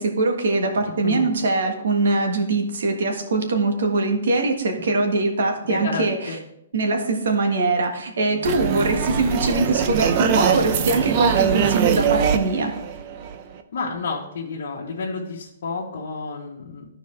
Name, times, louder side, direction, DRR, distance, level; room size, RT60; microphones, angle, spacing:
voice 1, 0.0-6.2 6.7-12.7, right 3 dB, 70° right, 3 dB, 1.5 m, -22 dB
voice 2, 5.6-6.4 13.7-16.9, left 4 dB, 60° left, -4 dB, 1.4 m, -30 dB
Bowed string instrument, 8.3-12.5, left 10 dB, 10° left, 0.7 m, -39 dB
sound 1, 8.4-13.6, right 7 dB, 30° right, 0.5 m, -22 dB
13.5 x 4.7 x 3.3 m, 0.80 s
hypercardioid pair, 175°, 0 cm